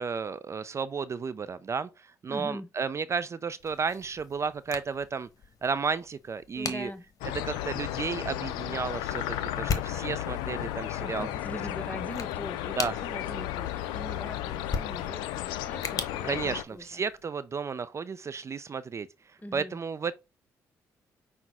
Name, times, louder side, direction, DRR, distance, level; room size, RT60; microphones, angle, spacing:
voice 1, 0.0-5.3 5.6-6.9 7.4-11.3 12.8-13.0 16.2-20.1, right 5 dB, 40° right, 0.4 m, -33 dB
voice 2, 2.3-2.7 6.5-7.0 11.0-17.0 19.4-19.8, left 1 dB, 20° left, 0.8 m, -42 dB
sound 1, 3.6-17.3, left 5 dB, 50° left, 1.0 m, -41 dB
sound 2, 7.2-16.6, left 13 dB, 85° left, 0.3 m, -34 dB
5.8 x 2.1 x 4.0 m
supercardioid pair, 50°, 7 cm